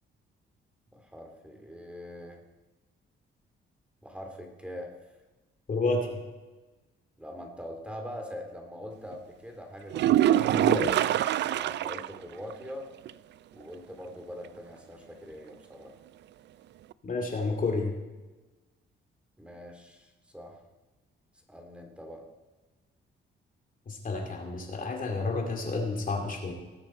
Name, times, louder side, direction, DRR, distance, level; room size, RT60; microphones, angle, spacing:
voice 1, 0.9-2.4 4.0-4.9 7.2-10.6 11.4-12.9 13.5-15.9 19.4-20.6 21.5-22.2, equal, 5° right, 3 dB, 2.3 m, -43 dB
voice 2, 5.7-6.1 10.5-11.0 17.0-17.9 23.9-26.5, left 3 dB, 45° left, 2 dB, 2.6 m, -30 dB
sound 1, 9.9-12.2 12.5-12.6 13.1-13.2 16.9-17.0, right 12 dB, 60° right, 0.4 m, -24 dB
19.0 x 7.8 x 4.3 m, 1.2 s
cardioid pair, 90°, 20 cm